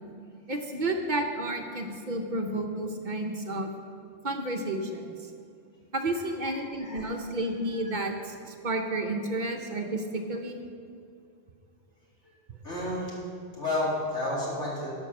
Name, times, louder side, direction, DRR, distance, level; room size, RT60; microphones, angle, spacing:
voice 1, 0.5-3.7 4.2-5.0 5.9-10.6, right 1 dB, 50° right, 4 dB, 0.8 m, -31 dB
voice 2, 7.7-8.1 12.6-13.1 13.6-14.9, left 1 dB, 90° left, -6 dB, 3.0 m, -31 dB
12.5 x 5.3 x 6.0 m, 2.5 s
omnidirectional pair, 1.2 m